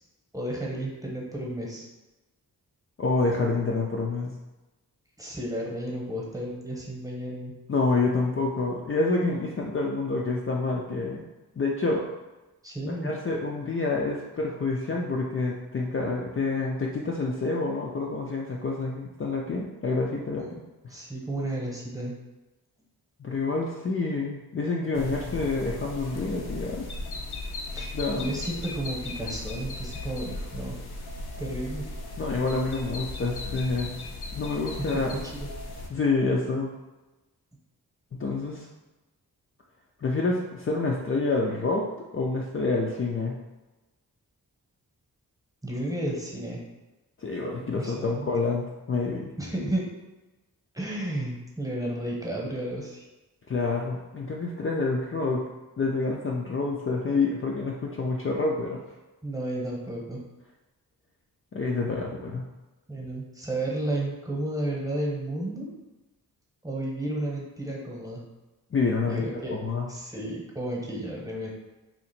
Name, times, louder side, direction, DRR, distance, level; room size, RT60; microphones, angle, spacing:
voice 1, 0.3-1.9 5.2-7.5 12.6-13.1 20.4-20.5 20.9-22.2 27.7-30.8 31.4-31.9 34.8-35.5 45.6-46.6 47.8-48.3 49.4-49.8 50.7-53.1 59.2-60.2 62.9-65.7 66.6-68.2 69.1-69.6 69.9-71.5, right 1 dB, 10° right, -4 dB, 1.1 m, -32 dB
voice 2, 3.0-4.3 7.7-11.2 11.6-12.1 13.0-20.6 23.2-26.9 27.9-28.3 32.2-34.0 34.3-35.1 35.9-36.7 38.1-38.7 40.0-43.4 47.2-49.3 53.5-55.5 55.8-58.8 61.5-62.5 68.7-69.2 69.6-69.9, left 3 dB, 35° left, -2 dB, 0.5 m, -28 dB
sound 1, 24.9-35.9, left 2 dB, 80° left, 0.6 m, -37 dB
2.8 x 2.4 x 4.2 m, 1.1 s
cardioid pair, 60°, 38 cm